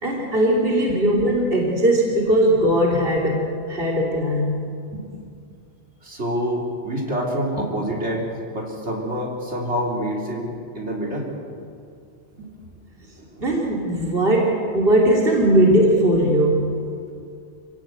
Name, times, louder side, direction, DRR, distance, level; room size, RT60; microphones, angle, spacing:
voice 1, 0.0-4.6 13.4-16.8, right 1 dB, 60° right, -2 dB, 3.3 m, -19 dB
voice 2, 6.0-11.3 12.4-12.5 13.2-13.4 15.4-15.5, equal, 80° right, -2 dB, 4.1 m, -27 dB
27.0 x 17.5 x 8.2 m, 2.4 s
omnidirectional pair, 1.1 m